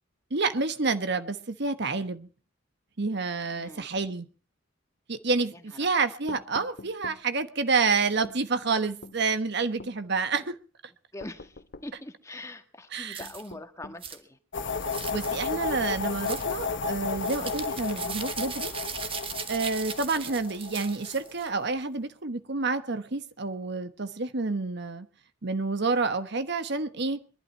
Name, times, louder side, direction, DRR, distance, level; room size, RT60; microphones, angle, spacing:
voice 1, 0.3-2.3 3.0-4.3 5.1-10.5 12.9-13.2 15.1-18.7 19.5-25.1 25.4-27.2, right 4 dB, 60° right, 1.2 m, -29 dB
voice 2, 3.6-3.9 5.5-6.1 10.3-10.5 11.1-14.4, left 1 dB, 15° left, 1.5 m, -43 dB
sound 1, 6.3-7.2 8.2-8.4 9.0-9.2 9.8-10.0 11.2-11.9 13.2-14.0, left 3 dB, 50° left, 0.8 m, -45 dB
sound 2, 13.1-13.5 14.0-14.2 14.8-15.3 16.2-16.5 17.2-21.5, right 6 dB, 30° right, 1.3 m, -38 dB
sound 3, 14.5-21.4, left 4 dB, 65° left, 1.2 m, -33 dB
23.0 x 12.0 x 4.5 m
head